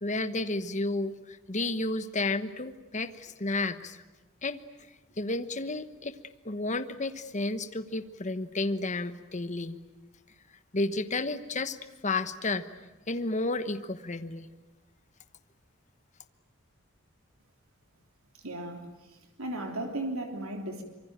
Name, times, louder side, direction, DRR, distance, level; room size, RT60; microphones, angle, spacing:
voice 1, 0.0-4.0 4.4-4.6 5.2-6.1 6.4-9.8 10.7-11.8 12.0-12.6 13.1-14.5, left 2 dB, 35° left, 10 dB, 1.2 m, -31 dB
voice 2, 18.4-20.8, right 1 dB, 85° right, 3 dB, 3.3 m, -36 dB
25.5 x 23.5 x 9.0 m, 1.2 s
head